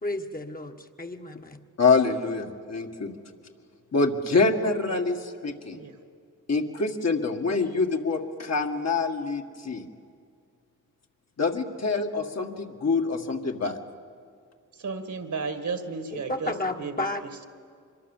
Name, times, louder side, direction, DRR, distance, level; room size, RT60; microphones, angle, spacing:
voice 1, 0.0-1.6 16.1-17.5, left 2 dB, 25° left, 4 dB, 1.5 m, -32 dB
voice 2, 1.8-3.1 3.9-5.2 5.4-5.8 6.5-9.8 11.4-13.8, left 4 dB, 55° left, 3 dB, 2.0 m, -25 dB
voice 3, 4.6-5.0 5.7-6.0 14.8-16.5 16.8-17.1, right 4 dB, 65° right, 9 dB, 2.0 m, -33 dB
25.0 x 22.5 x 7.4 m, 2.2 s
cardioid pair, 85°, 32 cm